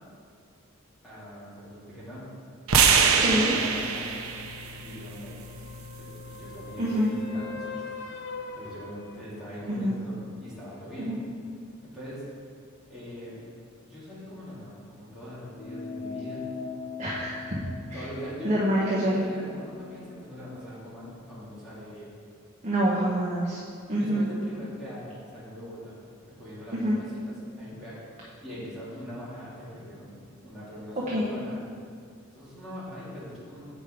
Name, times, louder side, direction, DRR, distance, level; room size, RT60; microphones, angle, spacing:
voice 1, 1.0-2.3 2.9-4.0 4.8-5.4 6.0-7.8 8.5-11.2 11.8-12.2 12.9-13.4 13.8-16.4 17.9-22.1 22.9-23.1 23.9-28.0 28.4-30.1 30.4-31.7 32.3-33.7, equal, ahead, -11 dB, 2.1 m, -42 dB
sound 1, 2.7-6.9, right 6 dB, 80° right, 0.7 m, -25 dB
voice 2, 3.1-3.5 6.8-7.1 9.7-9.9 11.0-11.2 17.0-17.6 17.9-18.0 18.4-19.2 22.6-23.6 23.9-24.2 26.7-27.0 31.1-31.2, equal, 35° right, -5 dB, 1.0 m, -26 dB
sound 2, 4.0-9.7 13.8-13.9, left 3 dB, 60° left, 0.6 m, -43 dB
sound 3, 15.6-20.4, left 4 dB, 35° left, 1.1 m, -40 dB
8.1 x 5.2 x 5.0 m, 2.2 s
head